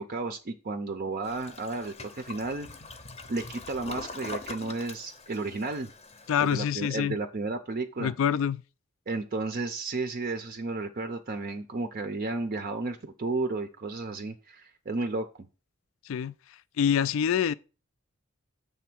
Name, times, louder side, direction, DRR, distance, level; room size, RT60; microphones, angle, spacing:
voice 1, 0.0-2.7 3.3-5.9 6.4-8.1 9.1-15.5, right 3 dB, 40° right, 0.5 m, -33 dB
Toilet flush, 1.2-6.6, left 3 dB, 30° left, 0.7 m, -43 dB
voice 2, 6.3-7.2 8.0-8.6 16.1-16.3 16.8-17.5, left 8 dB, 65° left, 0.3 m, -26 dB
6.9 x 3.4 x 6.0 m
head